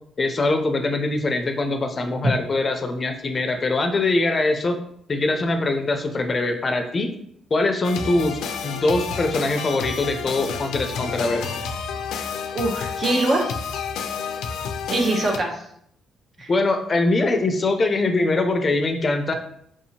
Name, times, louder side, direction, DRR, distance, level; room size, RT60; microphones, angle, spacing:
voice 1, 0.2-4.8 5.1-7.1 7.5-11.5 16.5-19.3, left 2 dB, 35° left, 5 dB, 0.5 m, -22 dB
sound 1, 7.8-15.4, left 6 dB, 90° left, 0.4 m, -30 dB
voice 2, 12.5-13.6 14.9-15.6 16.4-16.5, right 2 dB, 45° right, 1 dB, 0.9 m, -23 dB
4.7 x 2.8 x 2.8 m, 0.69 s
cardioid pair, 90°, 0 cm